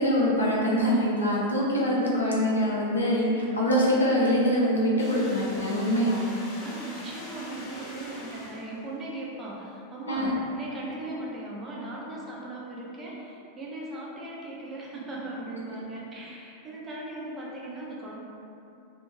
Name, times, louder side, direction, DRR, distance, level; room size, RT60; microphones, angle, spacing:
voice 1, 0.0-6.2 10.1-10.3, equal, 75° left, -5 dB, 0.5 m, -24 dB
sound 1, 5.0-9.0, left 1 dB, 30° left, 0.6 m, -43 dB
voice 2, 6.6-18.2, right 2 dB, 20° right, -4 dB, 0.5 m, -38 dB
2.5 x 2.0 x 3.1 m, 2.7 s
figure-of-eight pair, 90°, 0 cm